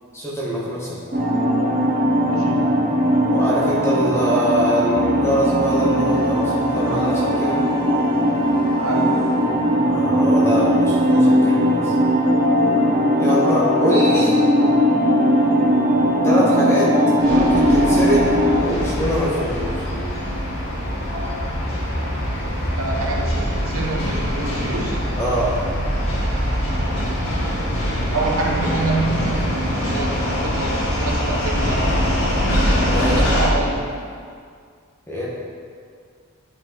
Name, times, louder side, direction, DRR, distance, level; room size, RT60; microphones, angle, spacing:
voice 1, 0.1-1.0 3.3-7.7 9.8-11.9 13.2-14.4 16.2-17.0 17.3-19.9 25.2-25.6 32.8-33.2 35.1-35.3, equal, 10° left, -6 dB, 1.3 m, -23 dB
sound 1, 1.1-18.6, equal, 40° right, 0.9 m, -18 dB
voice 2, 2.2-2.7 8.7-9.3 22.8-25.0 28.1-31.9 33.0-33.9, right 2 dB, 75° right, 0 dB, 1.0 m, -27 dB
sound 2, 5.0-10.6 10.9-11.0, left 1 dB, 40° left, 0.8 m, -35 dB
sound 3, 17.2-33.5, equal, 70° left, 2.1 m, -23 dB
9.1 x 5.6 x 4.0 m, 2.1 s
head